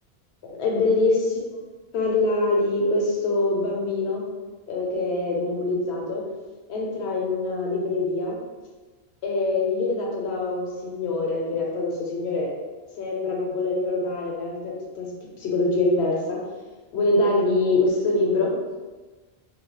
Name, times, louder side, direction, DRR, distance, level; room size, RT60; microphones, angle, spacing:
voice 1, 0.5-1.4 1.9-4.2 4.7-6.2 6.7-8.4 9.2-12.5 13.0-15.1 15.4-16.4 16.9-18.5, left 2 dB, 85° left, -2 dB, 0.9 m, -24 dB
2.2 x 2.0 x 2.8 m, 1.2 s
omnidirectional pair, 1.1 m